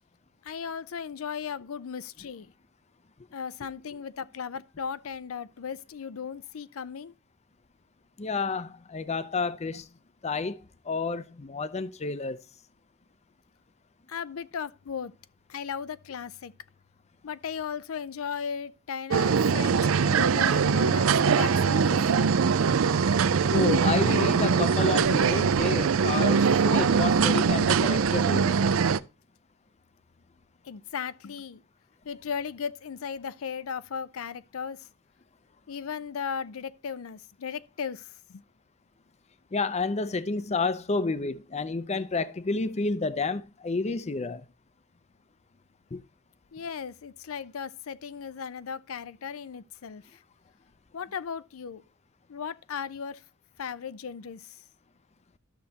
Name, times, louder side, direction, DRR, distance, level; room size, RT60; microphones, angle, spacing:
voice 1, 0.4-2.5 3.3-7.1 14.1-15.1 15.5-16.5 17.2-19.8 20.1-22.0 26.2-26.4 30.6-31.6 32.0-34.9 35.7-38.4 46.5-50.2 50.9-51.8 52.3-53.2 53.6-54.6, left 6 dB, 85° left, 0.5 m, -36 dB
voice 2, 8.2-9.9 10.2-10.6 10.8-12.4 23.5-28.6 39.5-44.4 45.9-46.0, left 3 dB, 30° left, 0.6 m, -30 dB
sound 1, 19.1-29.0, right 6 dB, 75° right, 0.5 m, -22 dB
12.5 x 6.5 x 2.8 m
head